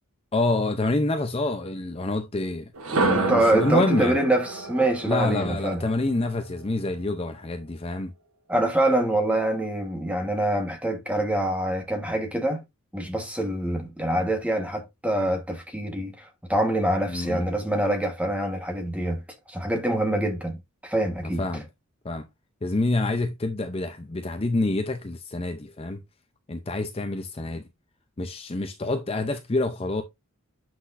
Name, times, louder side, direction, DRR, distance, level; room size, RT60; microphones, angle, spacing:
voice 1, 0.3-4.2 5.0-8.1 17.1-17.4 21.4-21.7 22.0-22.3 22.6-26.0 26.5-27.7 28.2-30.0, left 2 dB, 25° left, 0.6 m, -27 dB
sound 1, 2.7-6.7, right 3 dB, 80° right, 1.2 m, -29 dB
voice 2, 3.1-5.8 8.5-12.6 12.9-19.2 19.5-20.6 20.8-21.4, right 1 dB, 5° right, 1.3 m, -25 dB
8.1 x 6.0 x 2.6 m
head